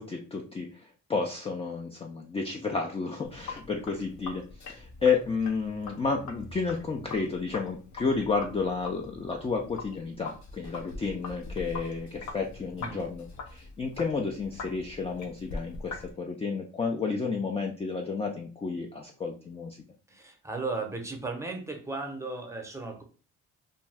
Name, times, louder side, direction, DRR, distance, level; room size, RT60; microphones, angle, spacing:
voice 1, 0.0-19.8, left 4 dB, 20° left, 1 dB, 0.4 m, -31 dB
Sink (filling or washing), 3.2-16.1, left 3 dB, 70° left, 0.7 m, -43 dB
voice 2, 20.1-23.0, right 3 dB, 10° right, 3 dB, 0.7 m, -35 dB
2.6 x 2.2 x 3.3 m, 0.37 s
cardioid pair, 90°, 30 cm